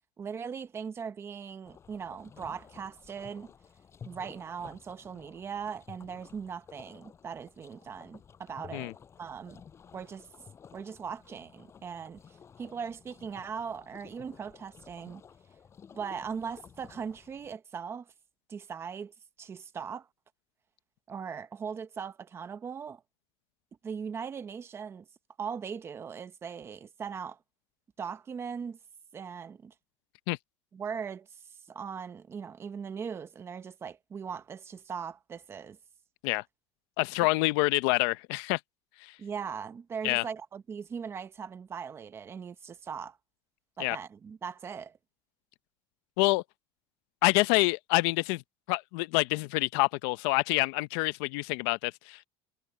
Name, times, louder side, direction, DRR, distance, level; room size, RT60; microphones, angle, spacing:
voice 1, 0.2-3.5 4.0-8.9 9.2-9.6 9.9-10.3 10.7-15.2 15.9-18.1 18.5-20.1 21.1-23.0 23.8-25.1 25.4-27.4 28.0-28.8 29.1-29.7 30.7-31.3 31.7-35.8 39.2-43.2 43.8-45.0, right 6 dB, 20° right, 0.8 m, -39 dB
sound 1, 1.6-17.5, left 7 dB, 20° left, 5.1 m, -53 dB
voice 2, 37.0-38.6 39.0-39.1 40.0-40.2 43.8-44.0 46.2-46.4 47.2-48.4 48.7-52.3, left 23 dB, 75° left, 0.6 m, -27 dB
cardioid pair, 175°, 13 cm